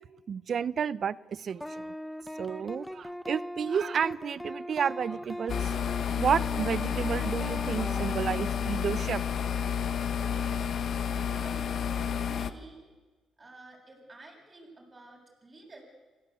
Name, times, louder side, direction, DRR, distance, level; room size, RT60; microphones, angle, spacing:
voice 1, 0.3-1.6 2.4-5.7 6.2-9.2, right 7 dB, 55° right, 20 dB, 0.6 m, -31 dB
sound 1, 1.6-9.0, equal, 5° left, 1.3 m, -40 dB
sound 2, 5.5-12.5, left 7 dB, 60° left, 1.2 m, -30 dB
voice 2, 11.3-12.8 13.4-15.8, right 2 dB, 30° right, -2 dB, 7.8 m, -51 dB
26.0 x 16.5 x 8.3 m, 1.3 s
supercardioid pair, 70°, 0 cm